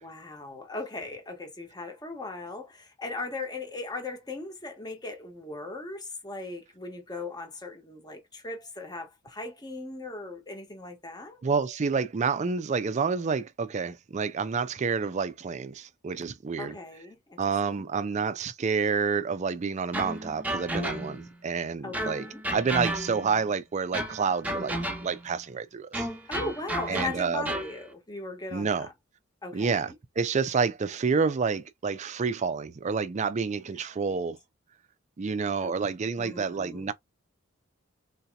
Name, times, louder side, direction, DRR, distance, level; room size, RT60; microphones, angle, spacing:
voice 1, 0.0-11.4 16.6-17.4 17.6-17.9 21.8-22.4 26.3-28.9 29.4-30.0 33.7-34.2 35.6-35.7 36.2-36.9, left 3 dB, 20° left, 1.0 m, -38 dB
voice 2, 11.4-16.8 17.4-22.3 22.5-24.8 25.0-26.1 26.9-27.5 28.5-28.9 29.5-34.4 35.2-36.9, right 5 dB, 35° right, 0.4 m, -29 dB
sound 1, 19.9-21.3 21.9-23.4 23.9-25.3 25.9-27.8, right 1 dB, 10° right, 0.7 m, -33 dB
3.9 x 2.8 x 2.2 m
head